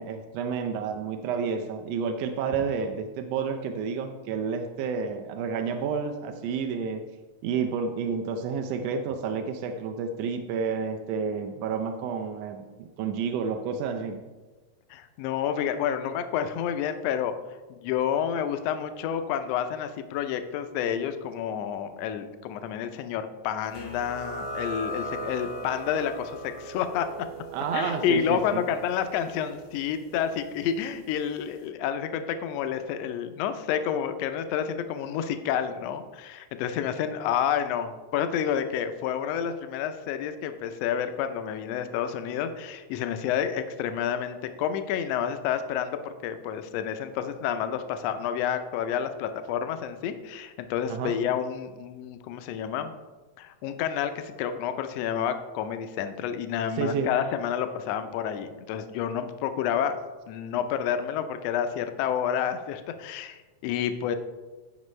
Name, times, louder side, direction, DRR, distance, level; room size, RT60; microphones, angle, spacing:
voice 1, 0.0-7.0 7.4-12.6 13.0-14.2 27.5-28.6 50.9-51.1 56.7-57.1, right 6 dB, 80° right, 5 dB, 1.5 m, -30 dB
voice 2, 14.9-17.3 17.7-27.1 27.7-52.9 53.4-60.0 60.3-64.2, left 9 dB, 80° left, 9 dB, 1.5 m, -29 dB
sound 1, 23.7-31.0, right 1 dB, 40° left, 0.9 m, -39 dB
14.5 x 5.3 x 3.2 m, 1.3 s
omnidirectional pair, 3.5 m